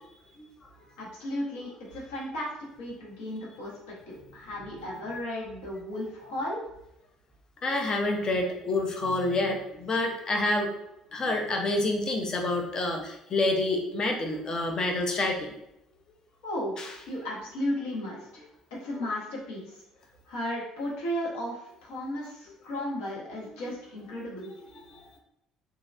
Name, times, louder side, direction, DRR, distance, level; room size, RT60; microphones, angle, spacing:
voice 1, 1.0-3.7 4.1-6.6 16.4-16.8 17.1-18.4 18.7-19.8 20.3-24.5, left 1 dB, 65° left, -4 dB, 1.1 m, -34 dB
voice 2, 7.6-10.7 11.1-15.5 16.8-16.9 24.9-25.2, left 2 dB, 35° left, 2 dB, 0.6 m, -28 dB
3.0 x 2.7 x 2.5 m, 0.83 s
figure-of-eight pair, 55°, 2 cm